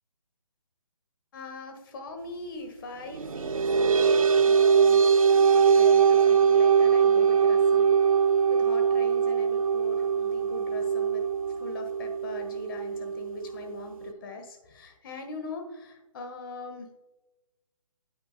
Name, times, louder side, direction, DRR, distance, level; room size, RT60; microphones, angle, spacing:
voice 1, 1.3-7.9 8.5-11.3 11.6-17.0, left 3 dB, 40° left, 5 dB, 1.6 m, -41 dB
sound 1, 3.1-14.1, right 6 dB, 85° right, 0.5 m, -22 dB
8.7 x 8.4 x 2.2 m, 1.0 s
figure-of-eight pair, 150°, 17 cm